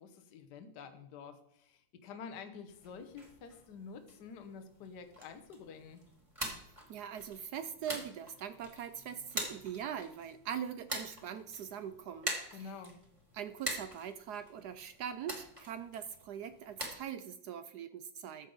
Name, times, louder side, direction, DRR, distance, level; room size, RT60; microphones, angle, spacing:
voice 1, 0.0-6.0 12.5-13.0, left 5 dB, 60° left, 7 dB, 1.5 m, -49 dB
sound 1, 2.7-16.9, equal, 15° right, 2.3 m, -45 dB
voice 2, 6.9-12.7 13.3-18.5, right 8 dB, 75° right, 11 dB, 0.9 m, -42 dB
13.5 x 8.2 x 3.9 m, 0.75 s
omnidirectional pair, 2.2 m